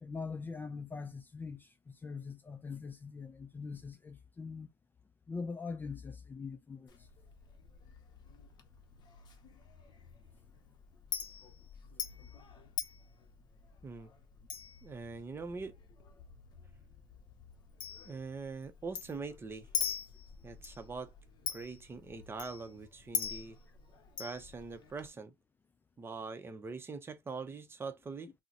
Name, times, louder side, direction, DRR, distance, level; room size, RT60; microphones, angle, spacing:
voice 1, 0.0-4.7 5.3-7.0, left 4 dB, 20° left, 0.4 m, -42 dB
Chink clink, 6.9-25.1, left 7 dB, 50° left, 0.7 m, -44 dB
voice 2, 14.8-15.8 18.0-19.7 20.4-21.1 21.5-23.6 24.2-25.3 26.0-28.3, right 4 dB, 25° right, 0.6 m, -43 dB
3.8 x 2.1 x 2.7 m
cardioid pair, 105°, 9 cm